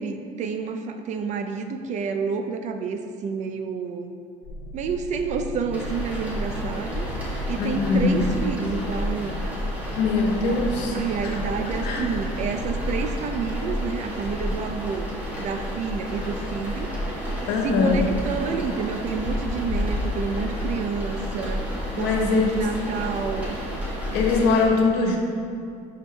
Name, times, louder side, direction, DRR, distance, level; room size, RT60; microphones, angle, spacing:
voice 1, 0.0-4.1 4.7-7.1 7.5-9.4 10.5-10.6 10.9-15.1 15.4-17.2 17.6-23.6, right 5 dB, 45° right, 7 dB, 0.4 m, -29 dB
sound 1, 4.4-13.0, left 1 dB, 25° left, 1.9 m, -37 dB
sound 2, 5.7-24.6, equal, 10° right, 1.6 m, -30 dB
voice 2, 7.6-8.3 9.9-11.0 11.2-11.4 11.7-12.1 17.5-18.1 19.7-19.8 22.0-22.5 24.1-25.2, left 4 dB, 80° left, 1 dB, 1.2 m, -22 dB
11.0 x 4.7 x 3.3 m, 2.3 s
cardioid pair, 160°, 17 cm